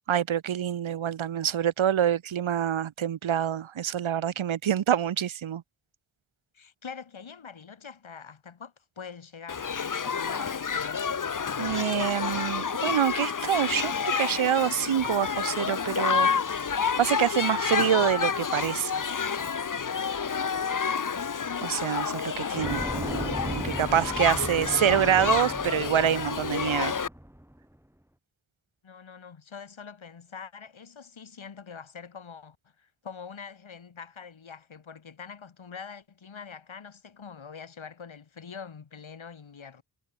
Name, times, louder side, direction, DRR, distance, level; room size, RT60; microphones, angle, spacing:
voice 1, 0.0-5.6 11.6-16.3 17.0-19.0 21.6-26.9, right 9 dB, 80° right, 0.8 m, -26 dB
voice 2, 6.5-11.0 28.8-39.8, left 6 dB, 80° left, 2.5 m, -44 dB
Shout / Human group actions, 9.5-27.1, left 6 dB, 40° left, 0.9 m, -29 dB
sound 1, 22.6-27.6, equal, 5° right, 3.6 m, -36 dB
wide cardioid pair, 60°, 47 cm